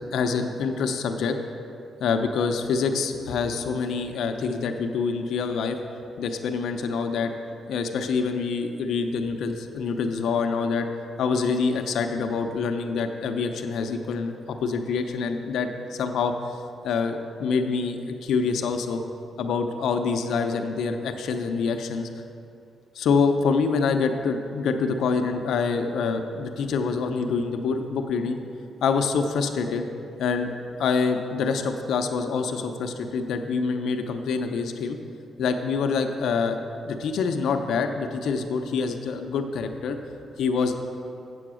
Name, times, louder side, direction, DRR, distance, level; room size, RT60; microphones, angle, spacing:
voice 1, 0.1-1.3 2.0-5.8 6.2-7.3 7.7-10.9 11.2-16.3 16.8-19.0 19.4-22.1 22.9-28.4 28.8-29.8 30.2-35.0 35.4-36.6 36.8-40.0 40.4-40.8, left 5 dB, 75° left, 6 dB, 0.6 m, -26 dB
7.8 x 7.7 x 6.2 m, 2.6 s
cardioid pair, 140°, 0 cm